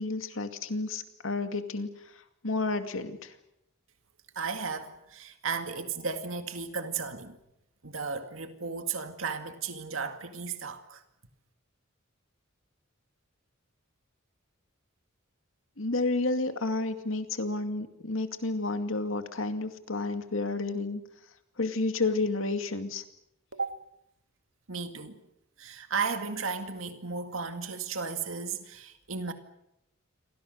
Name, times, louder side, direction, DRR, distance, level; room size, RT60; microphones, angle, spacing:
voice 1, 0.0-1.9 2.4-3.3 15.8-21.0 21.6-23.0, left 3 dB, 80° left, 2.4 m, -31 dB
voice 2, 4.4-7.4 7.8-11.0 23.5-23.7 24.7-25.2 25.6-29.3, right 5 dB, 80° right, 2.1 m, -34 dB
29.0 x 24.0 x 6.7 m
head